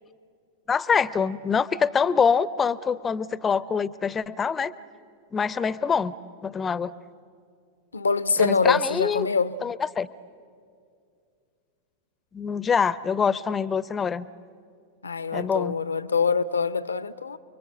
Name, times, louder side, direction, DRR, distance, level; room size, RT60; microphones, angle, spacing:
voice 1, 0.7-4.7 5.3-6.1 6.4-6.9 8.4-9.3 9.6-10.1 12.3-14.3 15.3-15.8, left 6 dB, 20° left, 0.6 m, -25 dB
voice 2, 7.9-9.6 15.0-17.4, left 5 dB, 75° left, 0.7 m, -24 dB
30.0 x 23.0 x 8.0 m
figure-of-eight pair, 90°, 0 cm